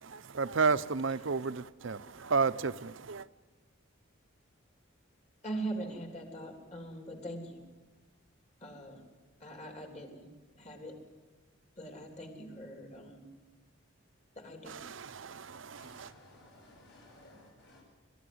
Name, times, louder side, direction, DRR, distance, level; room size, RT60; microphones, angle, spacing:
voice 1, 0.0-3.3 14.7-16.1, right 4 dB, 65° right, 0.7 m, -32 dB
voice 2, 5.4-7.6 8.6-9.0 9.4-11.0 11.8-13.3 14.3-14.7, right 2 dB, 35° left, 3.3 m, -42 dB
voice 3, 15.7-17.8, left 1 dB, 55° left, 7.5 m, -57 dB
29.0 x 13.5 x 7.9 m
head